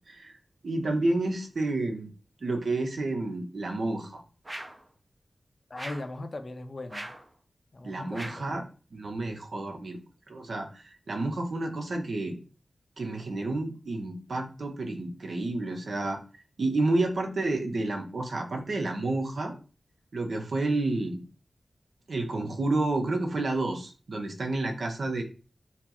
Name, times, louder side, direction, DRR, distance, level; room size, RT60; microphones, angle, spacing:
voice 1, 0.1-0.4 0.6-2.1 2.4-4.2 7.8-8.6 8.9-10.0 10.3-12.4 13.0-16.2 16.6-19.5 20.1-21.2 22.1-25.2, right 2 dB, 75° right, 4 dB, 0.7 m, -30 dB
sound 1, 4.4-4.9 5.7-6.2 6.9-7.3 8.1-8.5, right 1 dB, 30° right, 0.5 m, -40 dB
voice 2, 5.7-7.1 7.7-8.6, left 2 dB, 55° left, 8 dB, 0.5 m, -39 dB
5.6 x 2.0 x 3.0 m, 0.37 s
wide cardioid pair, 65°, 0 cm